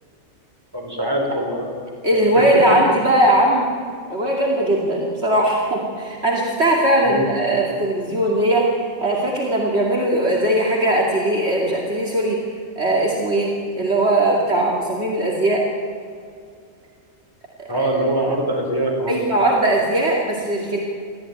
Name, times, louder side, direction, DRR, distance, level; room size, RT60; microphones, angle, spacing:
voice 1, 0.7-1.6 2.3-2.6 7.0-7.3 17.7-19.1, right 1 dB, 15° right, -1 dB, 5.0 m, -23 dB
voice 2, 2.0-3.7 4.1-12.4 12.8-15.7 17.8-17.9 19.1-20.8, right 1 dB, 50° right, -2 dB, 2.8 m, -19 dB
24.0 x 15.0 x 9.3 m, 2.3 s
omnidirectional pair, 1.4 m